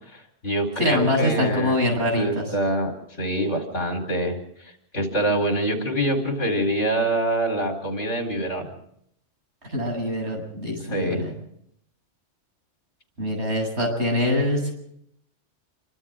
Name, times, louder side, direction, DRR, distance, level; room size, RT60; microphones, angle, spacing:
voice 1, 0.1-1.8 2.1-4.4 4.9-8.7 10.8-11.2, right 1 dB, 65° left, 3 dB, 4.8 m, -25 dB
voice 2, 0.8-2.4 9.7-11.3 13.2-14.7, left 1 dB, 60° right, 1 dB, 8.5 m, -24 dB
27.5 x 25.0 x 3.8 m, 0.71 s
omnidirectional pair, 1.3 m